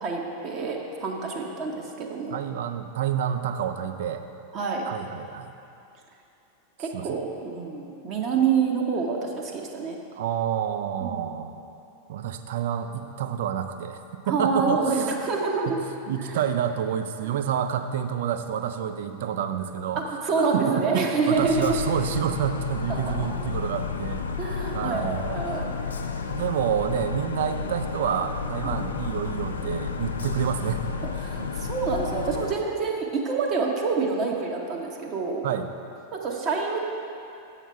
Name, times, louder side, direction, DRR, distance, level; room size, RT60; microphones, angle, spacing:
voice 1, 0.0-2.4 4.5-4.9 6.8-10.0 11.0-11.3 14.2-15.8 16.2-16.3 17.2-17.3 20.0-21.7 22.9-23.1 24.4-25.7 26.1-26.4 28.6-28.8 31.1-35.4 36.1-36.8, right 4 dB, 35° right, -1 dB, 0.9 m, -27 dB
voice 2, 2.3-4.2 4.8-5.5 6.8-7.2 10.1-11.6 12.1-15.1 15.7-15.8 16.1-24.2 24.7-25.3 26.3-30.9 31.4-31.5 35.4-35.7, right 9 dB, 55° right, 8 dB, 0.4 m, -29 dB
sound 1, 21.3-32.5, left 5 dB, 70° left, 0.4 m, -31 dB
8.0 x 5.7 x 4.7 m, 2.6 s
figure-of-eight pair, 90°, 0 cm